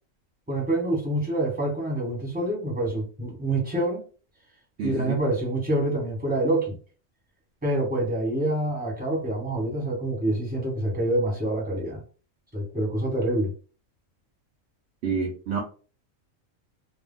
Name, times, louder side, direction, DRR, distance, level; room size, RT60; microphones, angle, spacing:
voice 1, 0.5-4.0 4.8-6.8 7.6-12.0 12.5-13.5, right 1 dB, 10° right, 1.0 m, -26 dB
voice 2, 4.8-5.2 15.0-15.6, right 5 dB, 65° right, 0.8 m, -28 dB
2.1 x 2.1 x 3.7 m
omnidirectional pair, 1.4 m